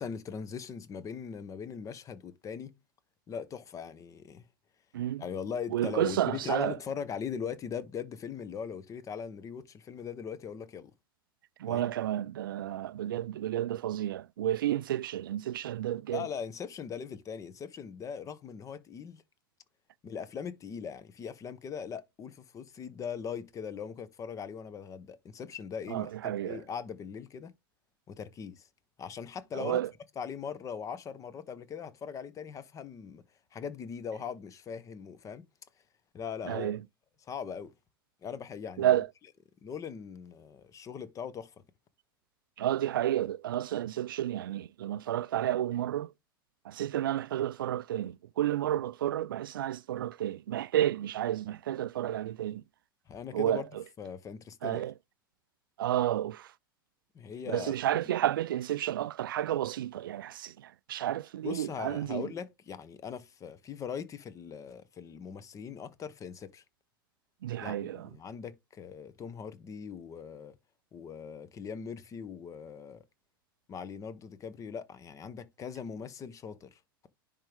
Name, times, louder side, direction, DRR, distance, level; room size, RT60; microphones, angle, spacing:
voice 1, 0.0-2.7 3.3-4.4 5.2-10.9 11.7-11.9 16.1-19.2 20.0-27.5 28.1-28.7 29.0-29.8 30.2-33.2 33.5-35.4 36.1-36.8 37.2-37.7 38.2-39.0 39.6-41.5 53.1-53.7 54.0-54.8 57.1-57.7 61.4-66.6 67.6-70.6 70.9-73.0 73.7-77.1, left 7 dB, 25° left, 1.0 m, -40 dB
voice 2, 4.9-5.2 5.7-6.8 11.6-16.3 25.9-26.6 29.5-29.9 36.4-36.8 38.8-39.1 42.6-46.1 46.6-52.6 53.3-53.8 54.6-54.9 55.8-56.5 57.5-62.3 67.4-68.1, right 12 dB, 70° right, 0.4 m, -31 dB
10.0 x 3.7 x 3.5 m
figure-of-eight pair, 85°, 12 cm